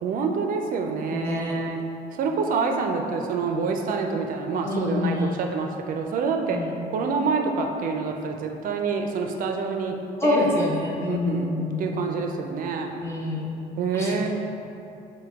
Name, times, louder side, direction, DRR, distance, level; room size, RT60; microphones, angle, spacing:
voice 1, 0.0-1.8 2.1-6.6 6.9-10.0 10.2-10.5 11.1-13.0 13.8-14.3, right 4 dB, 55° right, 3 dB, 0.4 m, -27 dB
voice 2, 1.1-1.6 4.6-5.4 6.5-6.7 10.2-11.9 13.0-13.5 13.9-14.3, left 2 dB, 15° left, -3 dB, 0.7 m, -26 dB
6.5 x 2.2 x 3.5 m, 2.7 s
cardioid pair, 110°, 17 cm